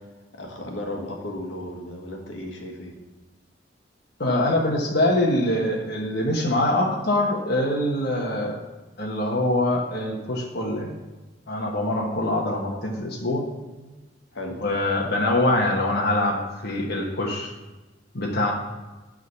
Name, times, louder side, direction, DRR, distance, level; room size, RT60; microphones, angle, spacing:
voice 1, 0.3-2.9 14.3-14.6, left 1 dB, 80° left, 1 dB, 1.5 m, -35 dB
voice 2, 4.2-8.6 9.0-11.0 11.5-13.5 14.6-17.5 18.1-18.5, left 1 dB, 60° left, -2 dB, 1.2 m, -24 dB
9.5 x 3.9 x 6.9 m, 1.2 s
head